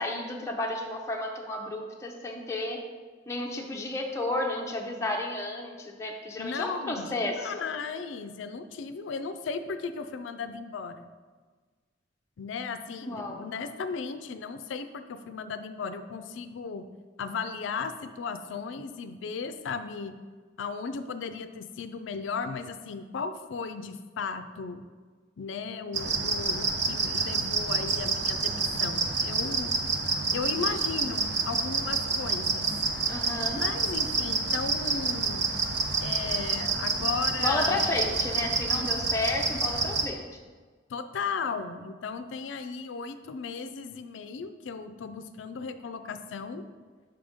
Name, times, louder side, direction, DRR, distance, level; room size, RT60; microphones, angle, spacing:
voice 1, 0.0-2.8 3.3-7.6 13.0-13.4 33.1-33.6 37.4-40.2, left 2 dB, 15° left, -1 dB, 0.5 m, -32 dB
voice 2, 6.4-11.1 12.4-16.8 17.2-20.2 20.6-24.8 25.4-29.7 30.3-32.7 33.5-35.5 36.0-37.8 40.9-46.6, left 5 dB, 75° left, 10 dB, 0.4 m, -36 dB
sound 1, 25.9-40.1, right 4 dB, 65° right, 0.6 m, -28 dB
5.8 x 5.1 x 3.5 m, 1.4 s
head